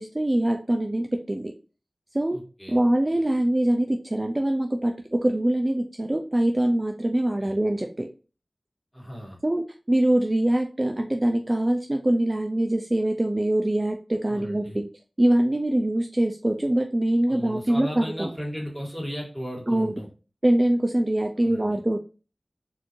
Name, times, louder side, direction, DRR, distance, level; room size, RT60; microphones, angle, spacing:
voice 1, 0.0-1.5 2.1-2.4 2.7-8.1 9.4-14.9 15.2-18.3 19.7-19.9 20.4-22.0, right 1 dB, 30° right, 4 dB, 0.4 m, -23 dB
voice 2, 2.3-2.8 7.4-7.6 8.9-9.4 14.3-14.8 17.3-20.1 21.4-21.8, equal, 5° left, -3 dB, 2.0 m, -36 dB
4.3 x 3.1 x 2.6 m, 0.33 s
wide cardioid pair, 55°, 0 cm